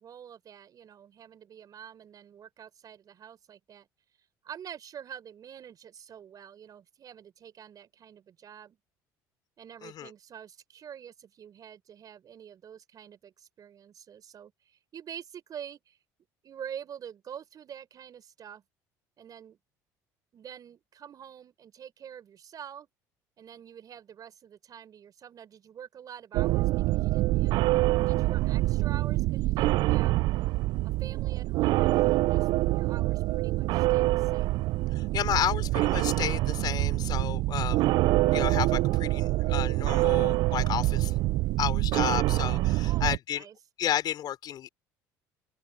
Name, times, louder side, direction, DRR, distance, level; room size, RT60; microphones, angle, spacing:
voice 1, 0.0-3.9 4.4-8.8 9.6-16.0 16.4-18.6 19.2-19.6 20.3-22.9 23.4-30.2 30.8-34.6 42.8-43.6, right 9 dB, 50° right, 6.7 m, -46 dB
sound 1, 26.3-43.2, right 18 dB, 65° right, 0.4 m, -25 dB
voice 2, 34.9-37.8 38.3-41.1 41.6-43.4 43.8-44.7, left 11 dB, 55° left, 4.0 m, -32 dB
open air
supercardioid pair, 80°, 8 cm